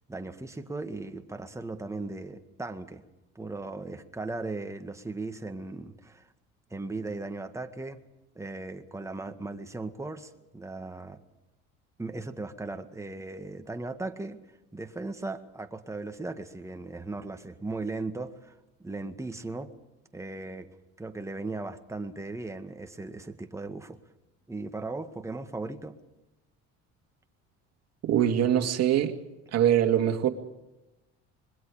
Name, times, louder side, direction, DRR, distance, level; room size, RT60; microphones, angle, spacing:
voice 1, 0.1-3.0 3.4-6.3 6.7-8.0 8.4-11.2 12.0-14.4 14.7-18.5 18.8-19.7 20.1-24.0 24.5-26.0, right 3 dB, 10° right, 1.9 m, -37 dB
voice 2, 28.0-29.2 29.5-30.3, right 10 dB, 55° right, 2.5 m, -23 dB
25.5 x 21.5 x 5.1 m
supercardioid pair, 90°, 30 cm